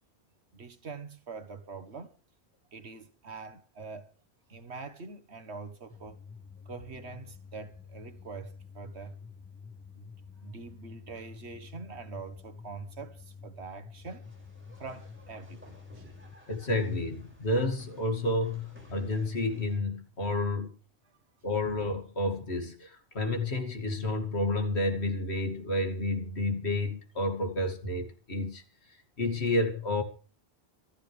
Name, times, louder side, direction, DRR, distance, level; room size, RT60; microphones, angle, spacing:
voice 1, 0.5-2.1 2.7-4.1 4.5-6.2 6.7-9.2 9.9-10.1 10.4-14.3 14.8-16.1, right 4 dB, 90° right, 1.8 m, -44 dB
sound 1, 5.9-16.3, left 5 dB, 10° left, 1.3 m, -49 dB
sound 2, 14.2-19.8, right 1 dB, 10° right, 6.1 m, -57 dB
voice 2, 16.5-20.8 21.4-28.6 29.2-30.0, left 2 dB, 85° left, 2.8 m, -30 dB
26.0 x 10.5 x 3.4 m
omnidirectional pair, 1.1 m